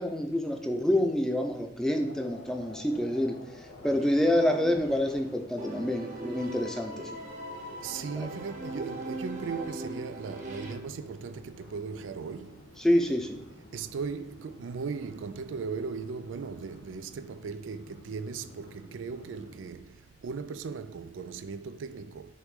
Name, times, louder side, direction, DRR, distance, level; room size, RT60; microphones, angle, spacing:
voice 1, 0.0-3.4 3.8-7.1 8.2-8.3 12.8-13.4, left 1 dB, 5° left, 0.6 m, -27 dB
sound 1, 1.9-19.8, left 1 dB, 85° left, 1.8 m, -51 dB
sound 2, 4.0-5.3 5.6-10.7, right 1 dB, 40° right, 1.1 m, -40 dB
voice 2, 7.8-12.7 13.7-22.3, right 5 dB, 85° right, 0.4 m, -38 dB
6.6 x 3.1 x 4.9 m
head